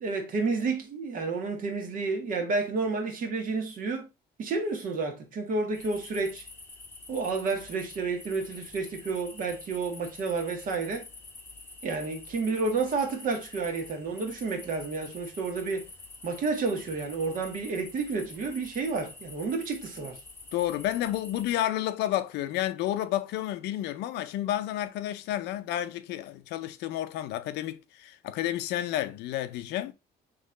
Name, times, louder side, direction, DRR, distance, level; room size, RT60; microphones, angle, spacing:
voice 1, 0.0-4.1 4.4-6.4 7.1-11.1 11.8-15.9 16.2-20.2, right 4 dB, 55° right, 1.4 m, -30 dB
sound 1, 5.7-21.6, left 3 dB, 15° left, 0.9 m, -47 dB
voice 2, 20.5-29.9, left 13 dB, 85° left, 0.5 m, -31 dB
3.8 x 3.1 x 3.6 m
cardioid pair, 110°, 17 cm